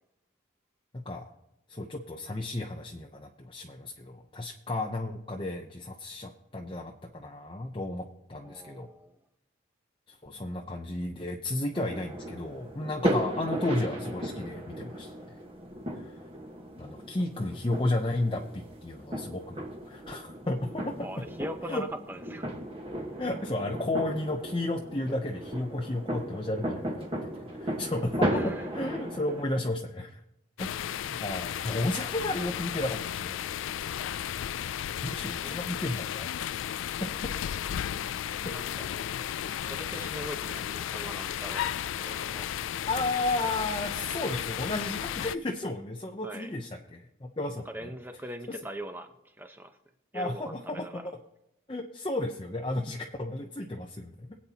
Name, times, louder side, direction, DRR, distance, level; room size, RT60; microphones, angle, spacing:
voice 1, 0.9-1.3 1.7-8.9 10.2-15.1 15.9-16.2 16.8-21.1 21.7-21.8 23.2-30.2 30.6-33.8 35.0-36.3 36.8-37.1 38.4-38.5 42.9-47.9 50.1-51.2 51.7-54.4, left 2 dB, 25° left, 2 dB, 0.7 m, -33 dB
voice 2, 8.4-9.2 17.5-17.6 21.0-22.6 28.3-28.7 35.1-35.6 38.5-38.9 39.5-42.5 46.2-46.5 47.7-49.1 49.4-49.7 50.1-51.0, right 1 dB, 10° right, 6 dB, 0.9 m, -41 dB
sound 1, 11.7-29.5, equal, 30° right, 1.4 m, -35 dB
sound 2, 30.6-45.4, left 10 dB, 90° left, 0.3 m, -34 dB
22.5 x 8.6 x 2.9 m, 0.86 s
head